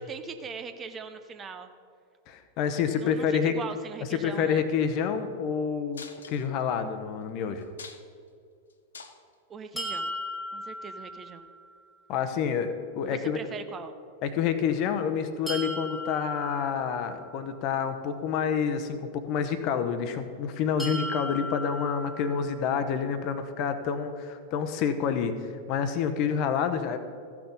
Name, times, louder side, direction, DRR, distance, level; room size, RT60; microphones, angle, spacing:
voice 1, 0.0-1.7 3.0-4.6 9.5-10.1 10.5-11.5 13.0-13.9, right 5 dB, 25° right, 8 dB, 0.6 m, -40 dB
voice 2, 2.3-3.5 4.1-7.7 12.1-13.4 14.2-27.0, left 7 dB, 40° left, 9 dB, 0.9 m, -28 dB
sound 1, 5.9-6.7 7.2-7.3 7.6-8.3 8.7-9.3 9.9-10.1 11.0-11.1, left 5 dB, 70° left, 0.7 m, -46 dB
sound 2, 9.8-11.7 15.5-17.5 20.8-22.8, equal, 5° left, 1.9 m, -37 dB
14.5 x 6.0 x 5.2 m, 2.3 s
figure-of-eight pair, 90°, 0 cm